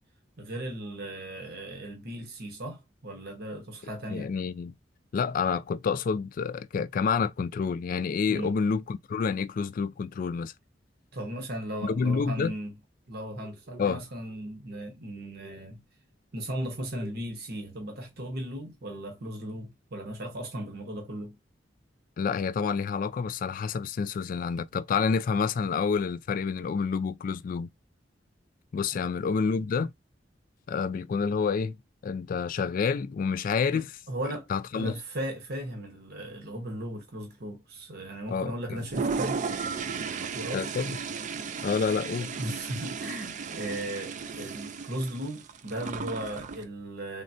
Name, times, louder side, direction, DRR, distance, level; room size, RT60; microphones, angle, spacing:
voice 1, 0.4-4.3 8.3-8.6 11.1-12.7 13.1-15.8 16.3-21.4 28.9-29.1 33.7-34.5 34.7-39.5 40.0-40.6 42.2-47.2, right 1 dB, 60° right, 0.9 m, -37 dB
voice 2, 4.1-4.7 5.1-10.5 11.8-12.5 13.8-14.0 22.2-27.7 28.7-29.9 30.7-31.8 32.0-33.9 34.5-34.9 38.3-38.9 40.5-41.0 41.6-42.3, left 5 dB, 50° left, 0.3 m, -28 dB
Toilet flush, 38.8-46.6, right 5 dB, 40° right, 0.4 m, -35 dB
3.6 x 2.1 x 2.5 m
head